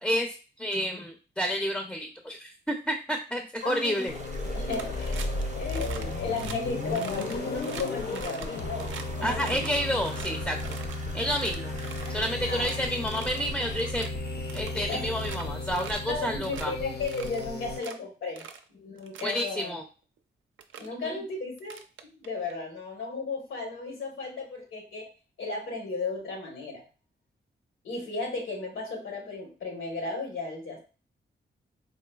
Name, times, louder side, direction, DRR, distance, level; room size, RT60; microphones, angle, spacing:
voice 1, 0.0-4.1 9.2-10.6 11.1-11.7 12.1-14.1 14.5-16.7 19.2-19.8 21.0-21.2, equal, 5° left, 3 dB, 0.4 m, -30 dB
voice 2, 3.6-4.0 4.5-5.3 5.5-9.7 12.5-12.7 14.9-15.0 16.1-18.4 18.7-19.7 20.8-21.8 22.0-25.1 25.4-26.8 27.8-30.8, left 3 dB, 85° left, 1 dB, 1.3 m, -34 dB
sound 1, 3.6-13.9, right 3 dB, 40° right, 0.6 m, -48 dB
sound 2, 4.1-17.8, left 2 dB, 55° left, 0.6 m, -34 dB
sound 3, 4.7-5.4 5.7-6.0 6.3-6.6 6.9-9.0 9.4-11.0 11.3-12.2 12.5-12.8 13.1-13.4 13.8-14.1 14.5-15.4 15.8-16.1 16.4-16.7 17.1-17.9 18.4-18.6 19.0-19.4 20.2-20.3 20.6-20.9 21.6-22.5, right 7 dB, 80° right, 0.4 m, -43 dB
3.8 x 2.6 x 2.3 m, 0.35 s
cardioid pair, 70°, 20 cm